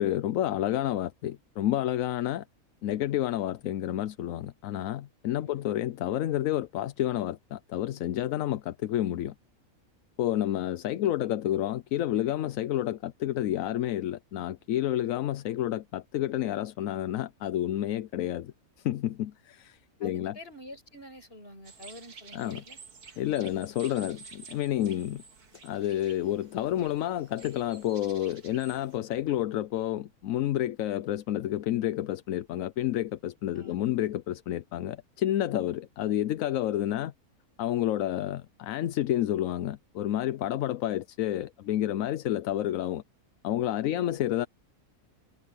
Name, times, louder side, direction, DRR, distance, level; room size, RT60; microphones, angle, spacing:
voice 1, 0.0-2.4 2.8-9.3 10.2-18.5 18.8-20.4 22.3-22.6 23.2-25.2 25.6-37.1 37.6-43.0 43.4-44.5, left 12 dB, 70° left, 1.0 m, -30 dB
voice 2, 20.0-22.8 33.5-33.9 43.9-44.2, left 1 dB, 40° left, 6.5 m, -48 dB
sound 1, 21.6-29.0, right 5 dB, 90° right, 2.6 m, -51 dB
omnidirectional pair, 1.6 m